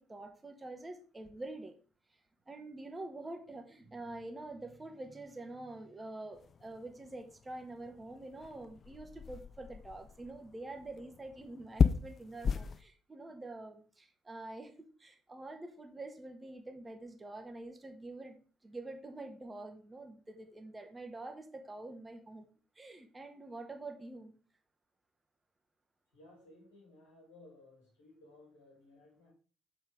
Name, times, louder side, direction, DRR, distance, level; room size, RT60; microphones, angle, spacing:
voice 1, 0.0-1.8 2.5-22.4 22.7-24.3, right 2 dB, 20° right, 1.5 m, -46 dB
sound 1, 6.3-12.8, left 6 dB, 40° left, 0.5 m, -36 dB
voice 2, 26.1-29.3, left 2 dB, 75° left, 2.7 m, -59 dB
8.0 x 4.4 x 5.2 m
figure-of-eight pair, 45°, 0 cm